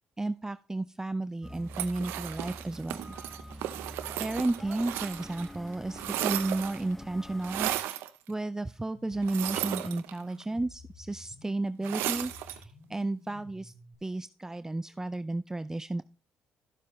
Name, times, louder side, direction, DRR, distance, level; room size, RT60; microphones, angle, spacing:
voice 1, 0.2-3.1 3.4-3.5 4.2-13.7 14.0-16.0, right 2 dB, 15° right, 13 dB, 0.4 m, -33 dB
sound 1, 1.4-7.8, equal, 10° left, 1.0 m, -46 dB
sound 2, 1.7-5.5 5.7-6.9 7.4-8.1 9.2-10.4 11.8-12.6, right 13 dB, 85° right, 0.7 m, -35 dB
sound 3, 8.9-13.9, left 2 dB, 30° left, 2.5 m, -52 dB
12.5 x 7.4 x 3.1 m, 0.33 s
supercardioid pair, 60°, 4 cm